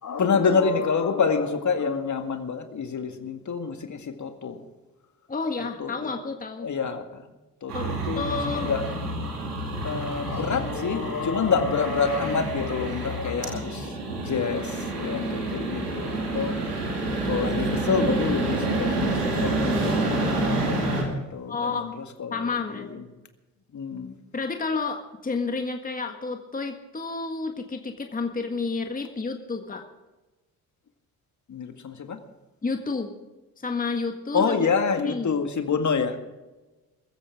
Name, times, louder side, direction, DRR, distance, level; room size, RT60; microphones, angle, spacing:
voice 1, 0.0-4.7 5.6-6.1 6.6-7.3 7.6-8.9 9.8-16.6 17.2-23.0 23.7-24.2 31.5-32.2 34.3-36.2, left 5 dB, 40° left, 6 dB, 2.0 m, -27 dB
voice 2, 5.3-6.7 7.7-7.9 8.1-8.7 21.5-21.9 22.3-23.1 24.3-29.8 32.6-33.1 33.6-34.6 35.0-35.4, left 4 dB, 20° left, 4 dB, 1.7 m, -30 dB
sound 1, 7.7-21.0, right 2 dB, 90° right, 2.6 m, -28 dB
22.0 x 15.0 x 3.8 m, 1.1 s
hypercardioid pair, 50°, 45 cm